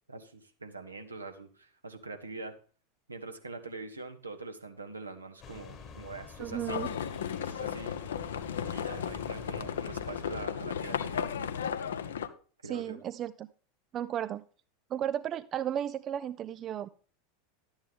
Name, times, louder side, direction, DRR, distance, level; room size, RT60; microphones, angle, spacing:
voice 1, 0.1-2.5 3.1-6.8 7.4-8.0 8.6-11.3 12.6-13.0, right 3 dB, 80° right, 6 dB, 1.3 m, -43 dB
sound 1, 5.4-10.5, left 5 dB, 30° left, 1.3 m, -47 dB
voice 2, 6.4-6.9 12.6-13.5 13.9-14.4 14.9-16.9, right 10 dB, 35° right, 15 dB, 0.4 m, -34 dB
Livestock farm animals working animals, 6.7-12.3, left 8 dB, 65° left, 0.7 m, -35 dB
12.0 x 8.8 x 3.6 m, 0.40 s
figure-of-eight pair, 85°, 0 cm